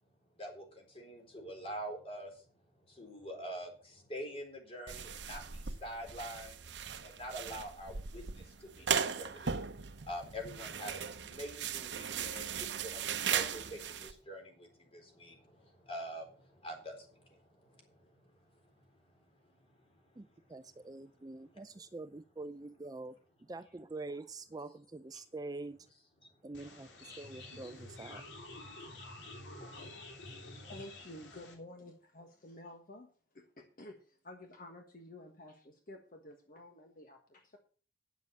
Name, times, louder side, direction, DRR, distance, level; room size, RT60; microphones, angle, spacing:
voice 1, 0.4-2.4 2.9-6.6 7.0-18.3 18.7-18.8 19.4-19.9 26.2-26.3, equal, 30° left, 2 dB, 3.9 m, -46 dB
sound 1, 4.9-14.1, right 7 dB, 75° right, 0.8 m, -38 dB
voice 2, 20.2-25.8 26.4-28.2, right 2 dB, 20° right, 11 dB, 0.4 m, -45 dB
sound 2, 26.5-31.5, left 2 dB, 80° left, 3.2 m, -49 dB
voice 3, 29.6-37.6, left 1 dB, 50° left, 4 dB, 1.5 m, -52 dB
9.5 x 7.4 x 7.0 m, 0.40 s
head